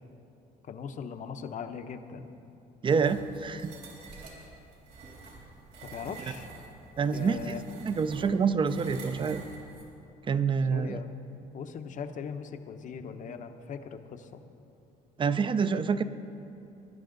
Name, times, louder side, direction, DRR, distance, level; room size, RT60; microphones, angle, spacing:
voice 1, 0.6-2.3 5.8-6.5 7.1-7.6 10.7-11.1 11.5-14.4, left 6 dB, 50° left, 8 dB, 0.8 m, -40 dB
voice 2, 2.8-3.7 7.0-7.6 7.8-9.4 10.2-11.0 15.2-16.0, right 5 dB, 30° right, 12 dB, 0.5 m, -27 dB
sound 1, 2.9-9.9, right 3 dB, 65° right, 3.5 m, -48 dB
19.5 x 10.5 x 3.9 m, 2.8 s
cardioid pair, 110°, 17 cm